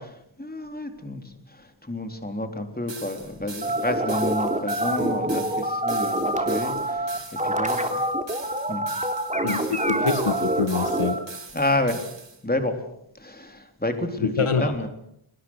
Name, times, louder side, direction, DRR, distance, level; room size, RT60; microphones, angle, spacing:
voice 1, 0.0-7.1 7.4-8.0 8.7-8.8 11.5-12.0 12.4-12.8 13.2-14.9, left 1 dB, 20° left, 6 dB, 4.0 m, -30 dB
sound 1, 2.9-12.4, right 4 dB, 60° right, 3.1 m, -42 dB
sound 2, 3.6-11.2, right 1 dB, 15° right, 3.2 m, -26 dB
voice 2, 9.4-11.2 14.2-14.7, left 5 dB, 80° left, 9 dB, 1.9 m, -25 dB
30.0 x 22.0 x 6.5 m, 0.73 s
wide cardioid pair, 70°, 50 cm